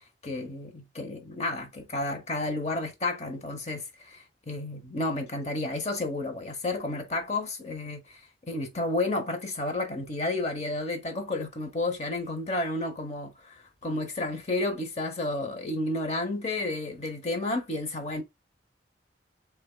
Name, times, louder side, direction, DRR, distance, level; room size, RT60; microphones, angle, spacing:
voice 1, 0.2-8.2 8.5-18.2, left 2 dB, 35° left, 0.8 m, -31 dB
6.7 x 2.3 x 2.2 m
head